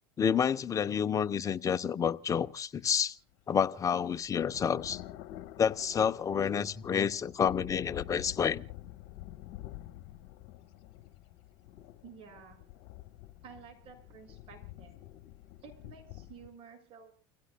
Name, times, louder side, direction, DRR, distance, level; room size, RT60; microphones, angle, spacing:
voice 1, 0.2-3.2 3.5-5.0 5.6-8.6, left 7 dB, 25° left, 0.9 m, -29 dB
sound 1, 3.4-16.5, left 15 dB, 65° left, 1.4 m, -48 dB
voice 2, 12.0-12.6 13.4-15.0 15.6-17.1, right 6 dB, 50° right, 6.9 m, -52 dB
30.0 x 16.0 x 2.3 m
supercardioid pair, 100°, 12 cm